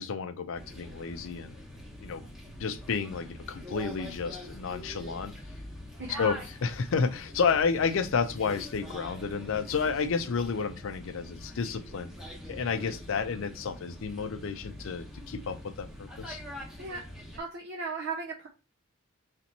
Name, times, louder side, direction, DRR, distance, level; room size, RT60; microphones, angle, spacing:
voice 1, 0.0-1.6 2.0-2.2 2.6-5.3 6.2-12.1 12.5-16.4, left 5 dB, 60° left, 0.4 m, -31 dB
sound 1, 0.5-17.4, left 1 dB, ahead, 0.9 m, -44 dB
voice 2, 17.4-18.5, right 4 dB, 50° right, 0.5 m, -36 dB
3.3 x 2.9 x 4.0 m
head